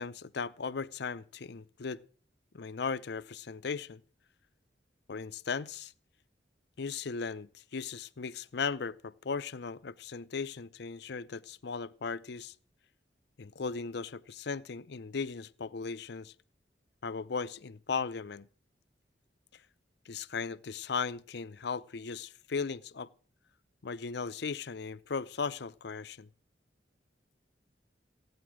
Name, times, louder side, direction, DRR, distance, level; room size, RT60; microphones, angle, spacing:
voice 1, 0.0-2.0 2.5-4.0 5.1-5.9 6.8-12.5 13.4-16.3 17.0-18.5 20.1-23.1 23.8-26.3, left 5 dB, 65° left, 0.6 m, -37 dB
16.0 x 9.5 x 6.2 m
head